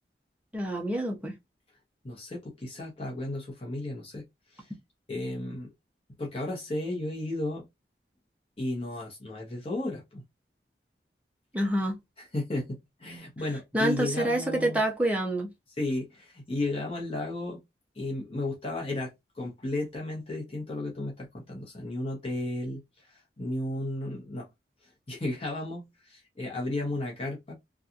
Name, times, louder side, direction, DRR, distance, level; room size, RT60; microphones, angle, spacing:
voice 1, 0.5-1.3 11.5-12.0 13.7-15.5, right 1 dB, 10° right, 0.6 m, -27 dB
voice 2, 2.0-4.7 5.1-5.7 6.2-7.7 8.6-10.2 12.2-14.8 15.8-17.6 17.9-24.5 25.1-27.5, left 2 dB, 30° left, 0.8 m, -34 dB
2.7 x 2.3 x 2.4 m
head